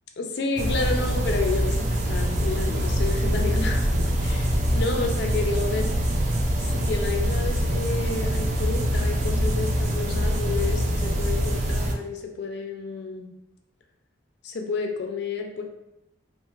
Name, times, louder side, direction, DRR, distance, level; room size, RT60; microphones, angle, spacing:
voice 1, 0.2-1.8 2.1-3.8 4.2-5.9 6.7-13.3 14.4-15.6, left 4 dB, 60° left, 4 dB, 0.4 m, -30 dB
sound 1, 0.6-11.9, equal, 40° right, 0.4 m, -24 dB
2.4 x 2.4 x 3.0 m, 0.89 s
head